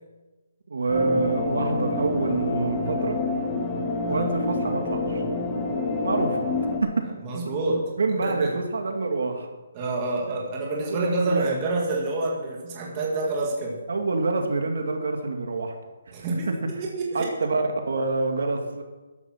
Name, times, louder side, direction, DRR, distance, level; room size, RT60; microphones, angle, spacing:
voice 1, 0.7-3.2 4.0-5.2 6.0-6.4 8.0-9.5 10.3-10.4 10.9-11.5 13.9-15.7 17.1-18.8, right 3 dB, 65° right, 4 dB, 2.4 m, -26 dB
sound 1, 0.9-6.8, left 3 dB, 10° left, 1.3 m, -27 dB
voice 2, 7.2-8.5 9.7-13.8 16.1-17.3, right 2 dB, 15° right, -2 dB, 2.2 m, -28 dB
14.0 x 11.5 x 6.0 m, 1.2 s
hypercardioid pair, 180°, 0 cm